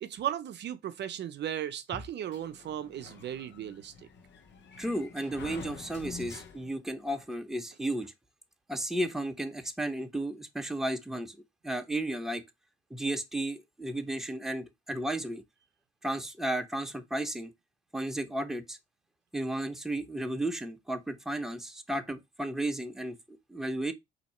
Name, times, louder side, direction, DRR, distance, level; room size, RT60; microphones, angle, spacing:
voice 1, 0.0-4.1, right 10 dB, 60° right, 0.5 m, -36 dB
Sliding door, 2.3-7.0, left 5 dB, 65° left, 1.0 m, -47 dB
voice 2, 4.8-8.1 8.7-11.4 11.6-12.4 12.9-15.4 16.0-17.5 17.9-18.8 19.3-23.9, right 1 dB, ahead, 0.7 m, -33 dB
4.1 x 2.8 x 4.2 m
cardioid pair, 90°, 20 cm